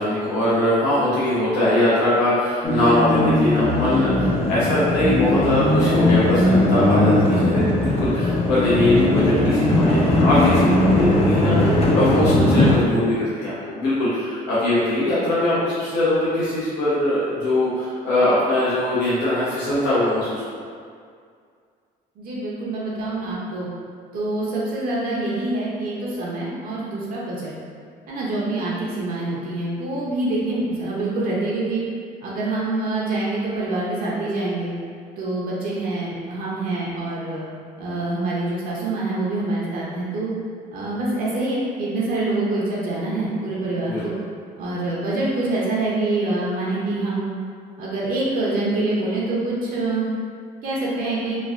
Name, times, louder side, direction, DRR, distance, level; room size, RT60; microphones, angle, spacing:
voice 1, 0.0-20.4 43.8-44.0, left 1 dB, 80° left, -11 dB, 0.9 m, -21 dB
sound 1, 2.6-12.7, left 1 dB, 35° left, 0.5 m, -19 dB
voice 2, 22.2-23.7 24.1-27.5 28.1-31.8 32.2-34.7 35.2-37.4 37.8-40.3 40.7-44.1 44.6-47.3 47.8-50.0 50.6-51.4, right 2 dB, 60° right, -6 dB, 0.7 m, -25 dB
3.1 x 2.2 x 2.5 m, 2.1 s
cardioid pair, 110°, 17 cm